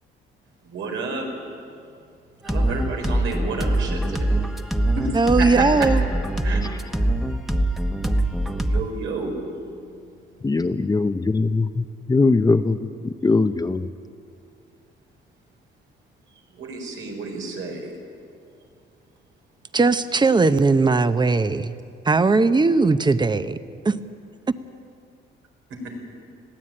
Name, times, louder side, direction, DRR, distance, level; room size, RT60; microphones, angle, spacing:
voice 1, 0.6-1.3 2.4-4.3 4.9-5.9 6.4-6.6 8.4-9.7 16.5-17.9 25.7-25.8, right 3 dB, 85° right, 1 dB, 4.5 m, -30 dB
sound 1, 2.5-8.8, right 1 dB, ahead, 1.2 m, -23 dB
voice 2, 5.1-6.0 19.7-21.7 22.1-23.6 23.8-24.0, right 3 dB, 20° right, 12 dB, 0.9 m, -19 dB
voice 3, 10.4-11.7 12.1-12.8 13.2-13.9, left 3 dB, 20° left, 8 dB, 0.7 m, -20 dB
21.0 x 15.5 x 8.8 m, 2.4 s
cardioid pair, 90°, 20 cm